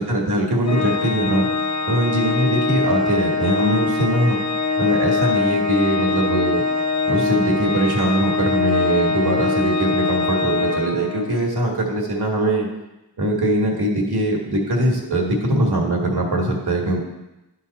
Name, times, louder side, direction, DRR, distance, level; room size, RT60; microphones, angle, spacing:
voice 1, 0.0-1.5 1.9-4.4 4.8-6.6 7.1-12.7 13.2-17.0, right 1 dB, 70° right, 0 dB, 1.8 m, -21 dB
Organ, 0.7-11.4, left 3 dB, 45° left, 0.7 m, -22 dB
11.0 x 3.9 x 4.1 m, 0.98 s
cardioid pair, 50°, 40 cm